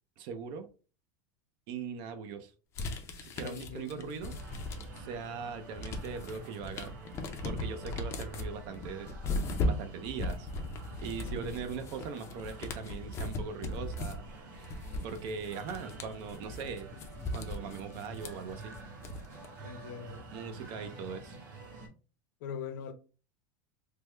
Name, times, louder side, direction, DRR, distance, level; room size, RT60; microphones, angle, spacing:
voice 1, 0.2-0.7 1.7-2.5 3.2-4.4 4.9-6.9 7.4-9.1 9.6-10.5 11.0-14.2 15.0-16.9 17.3-18.8 20.3-21.4, right 6 dB, 45° right, 0.5 m, -40 dB
sound 1, 2.7-5.2 5.5-19.5, left 2 dB, 25° left, 0.4 m, -38 dB
voice 2, 3.4-4.1 11.2-11.6 19.6-20.2 22.4-22.9, left 6 dB, 70° left, 0.6 m, -42 dB
sound 2, 4.2-21.9, right 3 dB, 80° right, 1.1 m, -49 dB
3.4 x 2.1 x 3.1 m
supercardioid pair, 160°, 11 cm